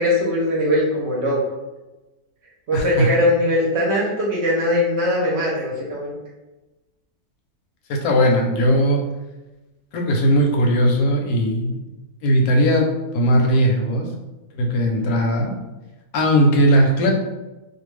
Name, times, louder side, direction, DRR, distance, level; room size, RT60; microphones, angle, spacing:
voice 1, 0.0-1.4 2.7-6.2, left 1 dB, 55° right, -3 dB, 0.8 m, -20 dB
voice 2, 2.7-3.1 7.9-9.0 9.9-11.9 12.2-14.1 14.5-15.6 16.1-17.1, equal, 75° left, 1 dB, 1.0 m, -18 dB
2.6 x 2.2 x 3.1 m, 1.1 s
omnidirectional pair, 1.6 m